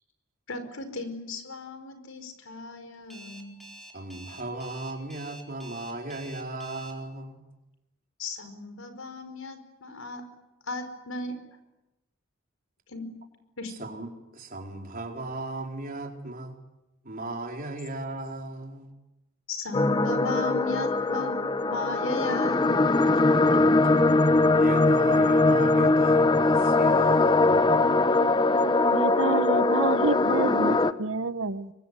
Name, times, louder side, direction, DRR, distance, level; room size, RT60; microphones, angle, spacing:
voice 1, 0.5-3.6 8.2-10.2 10.7-11.3 12.9-13.1 13.6-13.7 19.5-21.4 21.6-22.7 23.0-23.2, left 3 dB, 85° left, 8 dB, 5.2 m, -35 dB
Alarm, 3.1-6.9, right 1 dB, ahead, 4.7 m, -47 dB
voice 2, 3.9-7.4 13.7-16.6 17.0-18.9 24.0-24.1 24.5-27.9, right 2 dB, 45° right, 2 dB, 4.5 m, -37 dB
sound 1, 19.7-30.9, left 2 dB, 25° left, 1.0 m, -21 dB
voice 3, 28.9-31.7, right 3 dB, 70° right, 13 dB, 1.1 m, -28 dB
24.5 x 24.5 x 9.8 m, 0.96 s
head